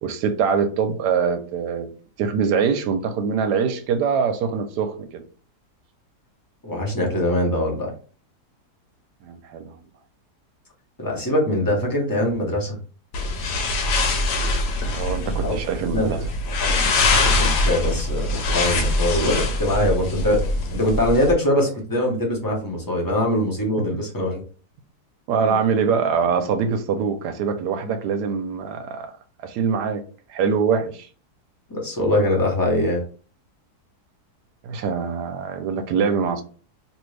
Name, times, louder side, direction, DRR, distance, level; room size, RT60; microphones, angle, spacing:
voice 1, 0.0-1.9 2.2-5.2 9.2-9.7 14.9-16.3 25.3-29.1 29.4-30.0 30.3-31.1 34.6-36.4, right 6 dB, 85° right, 1.2 m, -23 dB
voice 2, 6.6-7.9 11.0-12.8 15.4-15.6 15.9-16.2 16.6-16.8 17.1-20.4 20.7-24.4 25.4-25.6 31.7-33.0, left 1 dB, 20° left, 0.5 m, -22 dB
sound 1, 13.1-21.3, left 2 dB, 90° left, 1.3 m, -23 dB
2.8 x 2.6 x 3.1 m
omnidirectional pair, 1.7 m